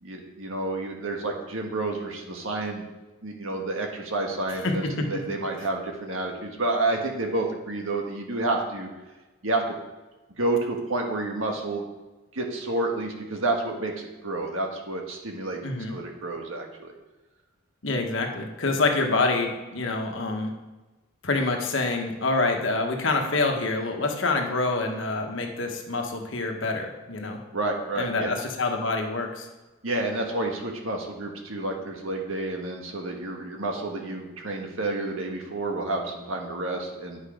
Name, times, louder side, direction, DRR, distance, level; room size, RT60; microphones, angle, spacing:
voice 1, 0.0-2.9 3.2-8.9 9.4-9.6 10.4-11.9 12.3-15.6 15.9-16.9 27.5-28.3 29.8-37.2, right 2 dB, 70° right, 1 dB, 1.6 m, -29 dB
voice 2, 4.6-5.2 15.6-15.9 17.8-20.5 21.2-27.4 28.0-29.5, left 3 dB, 60° left, 3 dB, 1.3 m, -26 dB
9.7 x 5.9 x 5.0 m, 1.2 s
head